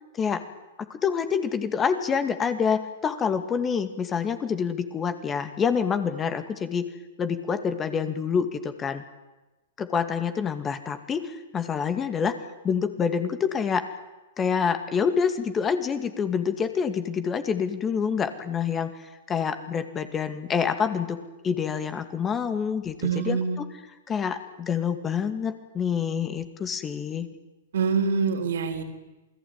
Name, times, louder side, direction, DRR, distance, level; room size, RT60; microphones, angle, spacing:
voice 1, 0.8-6.9 7.2-9.0 9.8-12.3 12.6-13.8 14.4-18.9 19.3-21.2 21.4-23.7 24.1-27.3, left 6 dB, 20° left, 9 dB, 2.4 m, -27 dB
voice 2, 23.0-23.6 27.7-28.8, right 5 dB, 70° right, 6 dB, 4.1 m, -25 dB
28.0 x 19.0 x 9.0 m, 1.1 s
hypercardioid pair, 110°, 0 cm